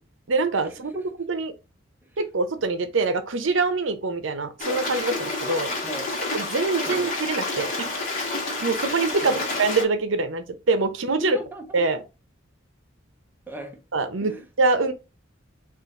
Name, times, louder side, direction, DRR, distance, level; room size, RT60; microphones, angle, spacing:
voice 1, 0.3-0.9 1.3-1.5 2.2-5.7 6.3-7.9 8.6-11.4 11.7-12.0 13.9-14.3 14.6-14.9, right 3 dB, 70° right, 0.7 m, -24 dB
Stream, 4.6-9.8, left 2 dB, 40° left, 1.1 m, -29 dB
voice 2, 5.8-6.2 6.9-7.1 9.2-9.5 11.2-11.8 13.5-13.8 14.2-14.4, equal, 10° right, 0.6 m, -37 dB
3.8 x 2.5 x 3.9 m
head